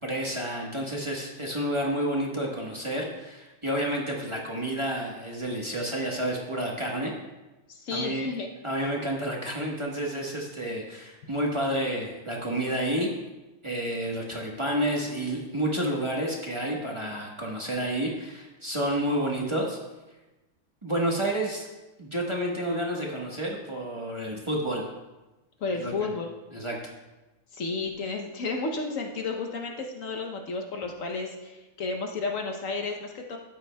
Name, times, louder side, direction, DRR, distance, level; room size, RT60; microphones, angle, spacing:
voice 1, 0.0-7.1 7.9-8.3 8.6-13.1 13.6-19.8 20.8-21.7 22.0-24.9 25.8-26.1 26.5-26.8, right 1 dB, 20° right, -3 dB, 1.1 m, -30 dB
voice 2, 7.7-8.5 25.6-26.3 27.5-33.4, left 3 dB, 65° left, 2 dB, 1.1 m, -32 dB
12.5 x 9.0 x 2.2 m, 1.1 s
omnidirectional pair, 1.6 m